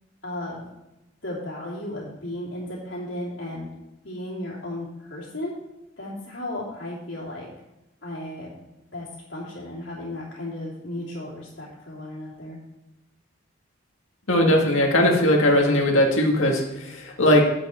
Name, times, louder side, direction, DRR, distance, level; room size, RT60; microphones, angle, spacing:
voice 1, 0.2-0.7 1.2-3.7 4.0-5.5 6.0-7.5 8.0-8.5 8.9-12.6, left 1 dB, 65° left, -8 dB, 3.0 m, -34 dB
voice 2, 14.3-17.5, left 1 dB, 85° left, 0 dB, 1.9 m, -19 dB
9.9 x 7.7 x 4.4 m, 0.94 s
head